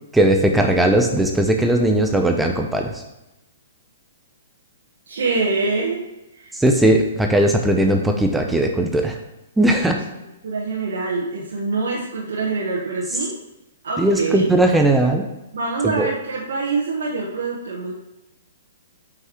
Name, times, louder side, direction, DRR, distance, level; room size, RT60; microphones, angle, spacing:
voice 1, 0.1-2.9 6.6-9.2 9.6-10.0 14.0-15.3 15.8-16.1, right 1 dB, 5° right, 3 dB, 0.6 m, -18 dB
voice 2, 5.1-6.1 6.3-6.6 9.8-10.0 10.4-13.3 13.8-14.5 15.5-17.9, right 3 dB, 75° right, -5 dB, 1.3 m, -25 dB
7.6 x 5.7 x 3.0 m, 0.97 s
hypercardioid pair, 135°, 0 cm